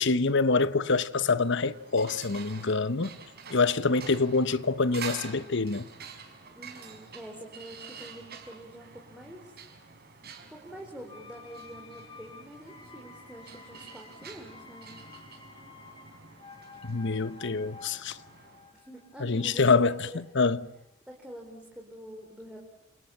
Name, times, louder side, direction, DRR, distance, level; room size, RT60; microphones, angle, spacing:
voice 1, 0.0-3.2 3.5-5.9 16.8-18.2 19.2-20.1 20.3-20.6, left 4 dB, 65° left, 1.2 m, -26 dB
sound 1, 1.3-18.7, right 5 dB, 50° right, 5.0 m, -47 dB
voice 2, 6.6-9.5 10.5-15.0 18.7-20.3 21.1-22.6, equal, 5° right, 4.8 m, -46 dB
sound 2, 11.1-20.8 21.1-21.2, left 4 dB, 25° left, 2.6 m, -52 dB
29.5 x 28.0 x 7.4 m
head